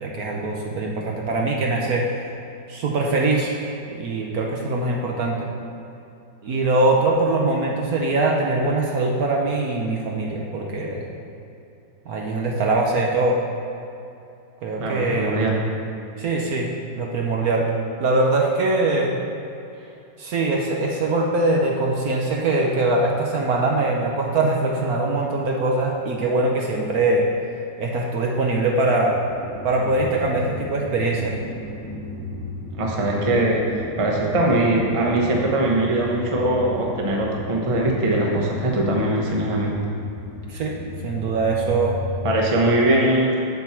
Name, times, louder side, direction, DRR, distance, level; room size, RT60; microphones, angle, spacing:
voice 1, 0.0-2.3 2.7-3.6 3.9-5.5 6.4-11.1 12.1-13.4 14.6-15.4 16.2-17.7 18.0-19.1 20.2-27.2 27.8-29.2 29.6-31.4 40.5-40.7 41.0-42.0, right 2 dB, 60° right, -1 dB, 1.1 m, -22 dB
voice 2, 14.8-15.5 32.8-39.7 42.2-43.3, right 1 dB, 25° right, -1 dB, 0.7 m, -21 dB
sound 1, 29.3-42.4, left 3 dB, 10° left, 0.8 m, -35 dB
8.0 x 4.5 x 7.2 m, 2.7 s
omnidirectional pair, 2.0 m